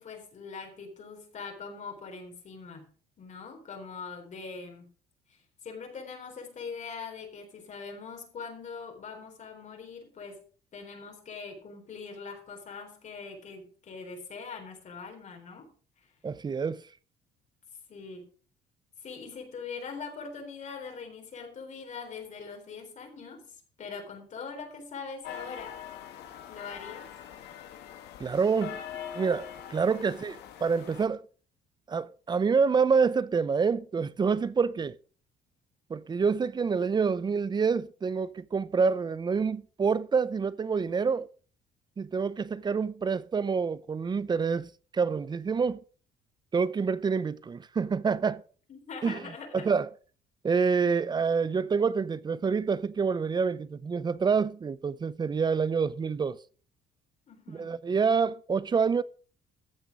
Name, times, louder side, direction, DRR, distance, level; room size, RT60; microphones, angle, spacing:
voice 1, 0.0-2.9 3.2-4.9 5.3-10.4 10.7-15.7 17.9-18.2 19.0-25.8 26.5-27.1 48.7-49.7 57.3-57.8, left 5 dB, 45° left, 4.0 m, -42 dB
voice 2, 16.2-16.8 28.2-28.8 29.1-31.3 31.9-35.0 35.9-41.3 42.0-45.8 46.5-48.4 49.0-49.2 49.5-49.9 50.4-56.4 57.5-59.0, right 5 dB, 25° right, 0.7 m, -27 dB
sound 1, 25.2-31.1, left 10 dB, 80° left, 1.9 m, -43 dB
14.5 x 7.1 x 5.0 m
cardioid pair, 110°, 17 cm